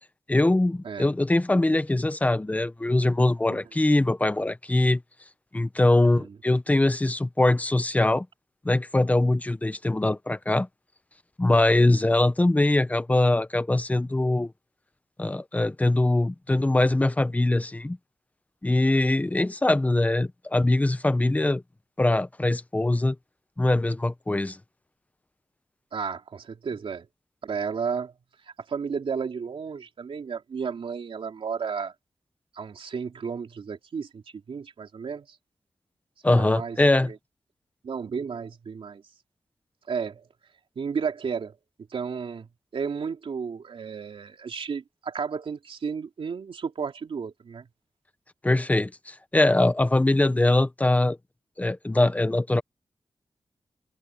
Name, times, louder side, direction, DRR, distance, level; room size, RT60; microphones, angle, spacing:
voice 1, 0.3-5.0 5.5-8.3 8.6-10.7 11.4-14.5 15.2-18.0 18.6-21.6 22.0-23.2 23.6-24.6 36.2-37.1 48.4-51.2 51.6-52.6, left 2 dB, 15° left, 1.0 m, -22 dB
voice 2, 6.0-6.4 25.9-27.1 27.4-28.1 28.4-31.9 32.5-35.4 36.3-36.8 37.1-37.2 37.8-39.0 39.9-40.3 40.7-41.6 41.9-47.7, right 6 dB, 80° right, 3.3 m, -33 dB
wide cardioid pair, 150°, 9 cm